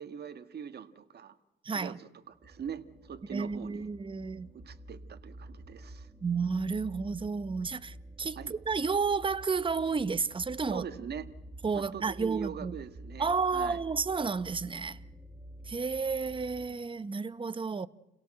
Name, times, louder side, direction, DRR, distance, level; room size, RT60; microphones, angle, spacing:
voice 1, 0.0-1.4 1.7-3.9 4.5-6.1 8.4-8.6 10.7-11.3 11.7-13.8, right 8 dB, 55° right, 1.8 m, -42 dB
voice 2, 1.6-2.0 3.3-4.5 6.2-10.8 11.6-12.7 13.2-15.0 15.7-17.9, right 5 dB, 25° right, 1.0 m, -31 dB
sound 1, 2.3-16.8, right 1 dB, 10° right, 2.4 m, -49 dB
29.5 x 17.5 x 7.7 m
cardioid pair, 90°, 20 cm